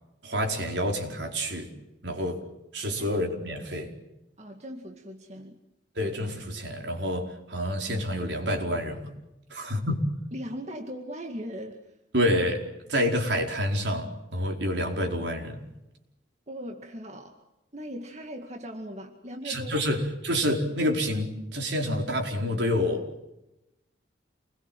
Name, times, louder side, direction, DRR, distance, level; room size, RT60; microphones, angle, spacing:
voice 1, 0.2-1.7 2.0-2.5 2.7-3.9 5.9-9.1 9.5-10.1 12.1-15.7 19.4-23.3, equal, 70° right, 4.8 m, -28 dB
voice 2, 4.4-5.6 9.5-9.7 10.3-12.0 16.5-17.5 17.7-19.9, equal, 35° right, 2.2 m, -39 dB
28.5 x 21.5 x 7.7 m
head